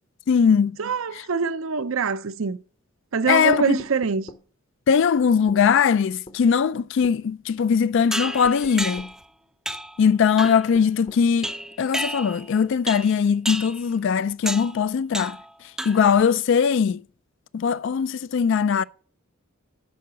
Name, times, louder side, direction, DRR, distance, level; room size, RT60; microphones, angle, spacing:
voice 1, 0.3-0.8 3.3-3.8 4.9-9.1 10.0-11.5 11.8-15.4 15.8-17.0 17.5-18.8, left 6 dB, 60° left, 0.3 m, -20 dB
voice 2, 0.8-2.6 3.1-4.3, right 5 dB, 75° right, 0.6 m, -24 dB
sound 1, 3.5-4.5 5.5-5.7 6.3-6.4 7.0-7.2 8.4-9.2 10.4-11.3, left 2 dB, 30° left, 0.7 m, -44 dB
sound 2, 8.1-9.2 9.7-10.0 10.4-10.7 11.4-12.5 12.9-13.2 13.5-13.8 14.5-14.8 15.1-15.5 15.8-16.2, right 1 dB, 5° right, 0.4 m, -31 dB
10.5 x 4.7 x 6.8 m
head